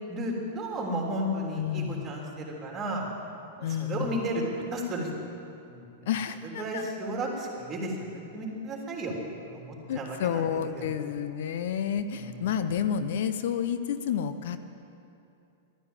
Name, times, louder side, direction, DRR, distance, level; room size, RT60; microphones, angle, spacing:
voice 1, 0.1-3.1 3.6-5.1 5.7-6.1 6.6-9.1 9.5-10.9 12.1-12.4, right 1 dB, 20° right, -1 dB, 3.5 m, -33 dB
voice 2, 1.6-2.1 3.6-4.2 6.1-6.9 9.9-14.6, left 8 dB, 65° left, 10 dB, 0.7 m, -30 dB
12.5 x 9.7 x 9.1 m, 2.7 s
hypercardioid pair, 120°, 0 cm